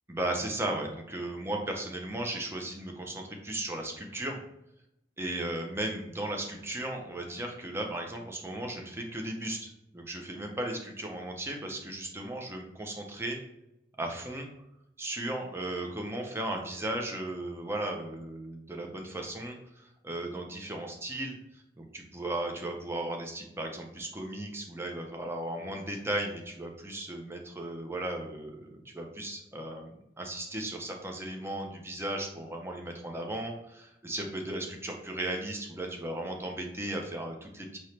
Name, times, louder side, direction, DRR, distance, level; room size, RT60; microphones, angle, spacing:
voice 1, 0.1-4.4 5.2-9.7 9.9-13.4 14.0-14.5 15.0-37.8, right 1 dB, 15° right, 2 dB, 0.6 m, -36 dB
4.4 x 2.9 x 3.3 m, 0.84 s
head